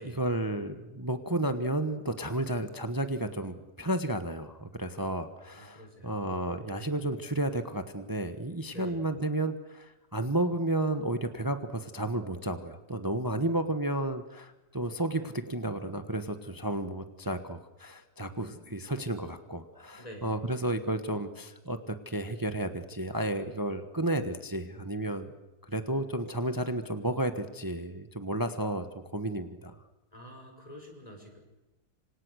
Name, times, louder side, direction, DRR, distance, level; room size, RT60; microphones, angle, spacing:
voice 1, 0.0-21.8 22.0-25.3 25.7-28.8 29.1-29.7, right 1 dB, 15° right, 9 dB, 1.3 m, -32 dB
voice 2, 5.5-6.5 8.7-9.0 20.0-20.4 30.1-31.4, equal, 20° left, 2 dB, 6.2 m, -47 dB
27.0 x 26.5 x 6.5 m, 1.0 s
omnidirectional pair, 1.8 m